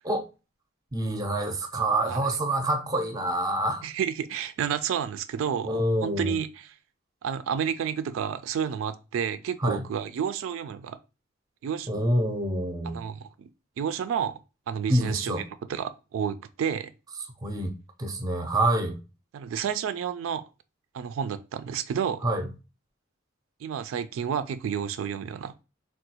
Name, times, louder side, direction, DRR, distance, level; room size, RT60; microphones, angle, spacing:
voice 1, 0.9-3.8 5.6-6.3 9.6-9.8 11.9-13.0 14.9-15.4 17.4-17.7 18.0-19.0 22.2-22.5, right 1 dB, 20° right, 0.5 m, -26 dB
voice 2, 3.8-6.7 7.2-11.0 11.6-11.9 12.9-13.5 13.8-14.4 14.7-15.4 15.7-16.9 19.3-20.4 20.9-22.2 23.6-25.5, right 8 dB, 90° right, 0.3 m, -30 dB
3.6 x 2.3 x 2.8 m
head